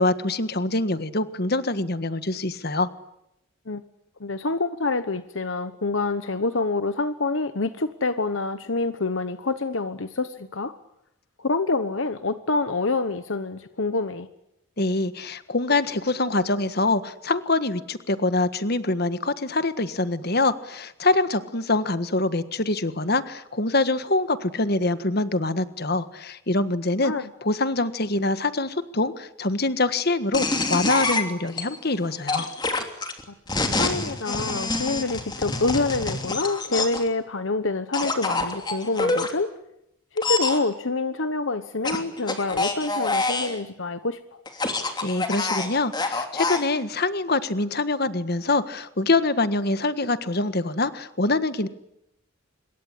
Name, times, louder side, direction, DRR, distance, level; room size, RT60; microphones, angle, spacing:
voice 1, 0.0-2.9 14.8-27.1 27.4-32.5 45.0-51.7, left 2 dB, 50° left, 12 dB, 1.6 m, -24 dB
voice 2, 4.2-10.7 11.4-14.3 27.0-27.3 33.8-39.5 40.1-44.2, left 3 dB, 70° left, 11 dB, 1.1 m, -26 dB
sound 1, 30.3-31.6 32.3-37.1 37.9-39.3 40.2-40.6 41.8-43.6 44.5-46.6, left 3 dB, 20° left, 3.0 m, -26 dB
26.5 x 22.5 x 9.9 m, 0.83 s
head